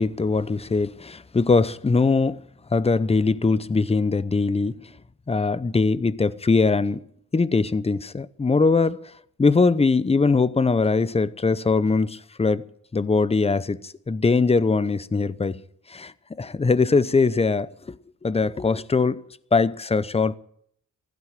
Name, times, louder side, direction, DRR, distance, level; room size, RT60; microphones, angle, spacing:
voice 1, 0.0-2.4 2.7-4.8 5.3-7.0 7.3-9.0 9.4-12.6 12.9-15.6 15.9-16.1 16.4-18.0 18.2-19.2 19.5-20.3, left 4 dB, 20° left, 0.7 m, -21 dB
15.5 x 12.0 x 7.5 m
cardioid pair, 90°, 31 cm